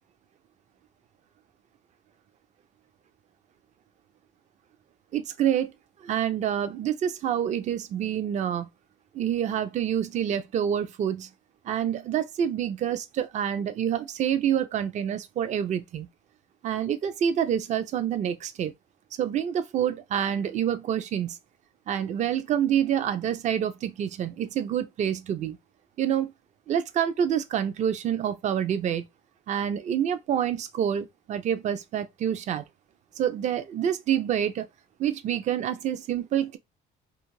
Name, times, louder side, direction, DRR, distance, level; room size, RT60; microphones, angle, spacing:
voice 1, 5.1-5.7 6.0-8.7 9.1-11.3 11.6-16.1 16.6-18.7 19.2-21.4 21.9-25.6 26.0-26.3 26.7-29.0 29.5-32.6 33.2-34.7 35.0-36.6, right 9 dB, 45° right, 0.4 m, -27 dB
2.5 x 2.4 x 3.0 m
cardioid pair, 110°, 17 cm